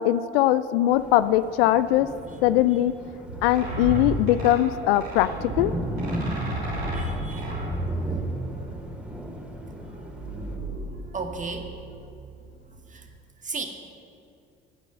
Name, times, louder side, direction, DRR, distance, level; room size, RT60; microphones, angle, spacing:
voice 1, 0.0-2.1 2.4-2.9 3.4-5.7, left 13 dB, 70° left, 16 dB, 0.5 m, -21 dB
Thunder, 0.9-10.6, equal, 5° right, 2.5 m, -36 dB
sound 1, 3.3-9.1, right 1 dB, 85° right, 3.2 m, -32 dB
sound 2, 4.3-13.0, right 2 dB, 60° right, 3.6 m, -42 dB
voice 2, 6.9-7.5 8.1-8.2 8.5-8.6 10.1-10.3 11.1-11.7 12.9-13.0 13.4-13.7, right 4 dB, 25° right, 4 dB, 1.7 m, -35 dB
16.5 x 6.0 x 6.7 m, 2.5 s
hypercardioid pair, 55°, 30 cm